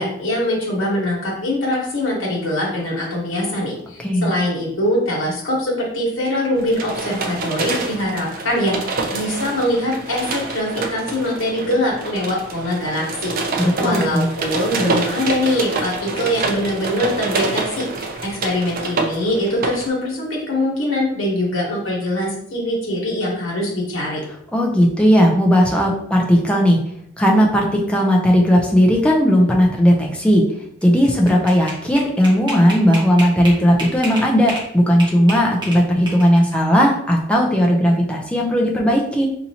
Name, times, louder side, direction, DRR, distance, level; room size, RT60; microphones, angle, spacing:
voice 1, 0.0-13.3 13.8-24.2, left 1 dB, 65° left, -4 dB, 1.3 m, -22 dB
sound 1, 6.6-19.9, right 3 dB, 45° right, 0.5 m, -27 dB
voice 2, 13.6-14.3 24.5-26.8 27.2-30.4 30.8-39.3, equal, 5° left, -1 dB, 0.5 m, -16 dB
sound 2, 30.8-34.7 35.0-36.5, right 1 dB, 20° right, 1.1 m, -30 dB
4.1 x 2.8 x 2.8 m, 0.70 s
head